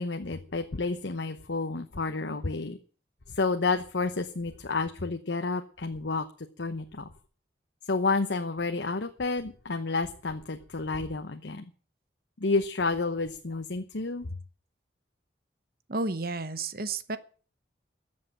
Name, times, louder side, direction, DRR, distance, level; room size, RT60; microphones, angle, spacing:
voice 1, 0.0-2.8 3.3-6.3 6.6-7.1 7.9-11.7 12.4-14.3, left 3 dB, 70° left, 7 dB, 0.9 m, -30 dB
voice 2, 15.9-17.2, right 3 dB, 50° right, 13 dB, 1.0 m, -31 dB
13.5 x 7.7 x 8.7 m, 0.42 s
head